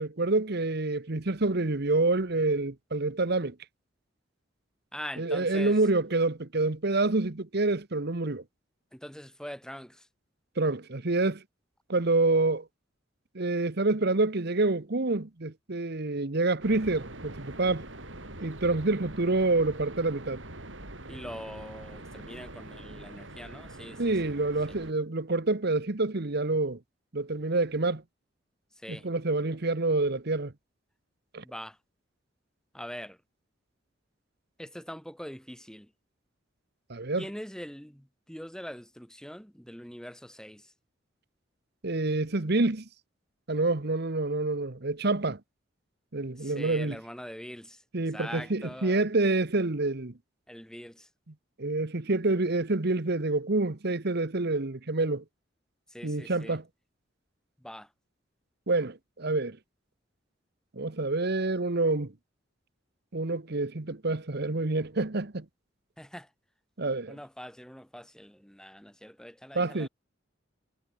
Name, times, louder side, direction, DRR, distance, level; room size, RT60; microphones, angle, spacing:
voice 1, 0.0-3.5 5.2-8.4 10.6-11.4 11.9-12.7 13.3-17.9 18.4-20.4 24.0-26.8 27.1-28.0 28.9-30.5 31.3-31.4 36.9-37.3 41.8-42.8 43.5-45.4 46.1-47.0 47.9-50.1 51.6-55.2 56.0-56.6 58.7-59.6 60.8-62.1 63.1-65.4 66.8-67.2 69.5-69.9, right 2 dB, 60° right, 1.3 m, -27 dB
voice 2, 4.9-5.8 8.9-10.0 21.1-24.0 28.8-29.0 31.4-31.8 32.7-33.2 34.6-35.9 37.2-40.6 46.4-47.8 48.1-49.0 50.5-51.1 55.9-56.6 57.6-57.9 66.0-66.3 67.1-69.9, equal, 5° left, 2.5 m, -43 dB
sound 1, 16.6-24.9, right 1 dB, 80° right, 6.9 m, -44 dB
head